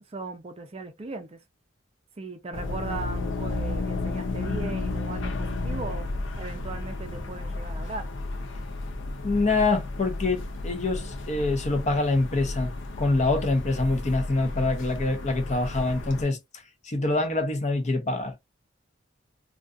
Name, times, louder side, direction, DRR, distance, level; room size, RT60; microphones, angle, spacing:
voice 1, 0.1-1.4 2.2-6.1 6.4-8.1, right 3 dB, 30° right, 0.5 m, -38 dB
sound 1, 2.5-16.2, left 2 dB, 80° left, 0.5 m, -33 dB
voice 2, 9.2-16.4 16.8-18.3, left 2 dB, 40° left, 0.7 m, -25 dB
2.3 x 2.3 x 2.4 m
head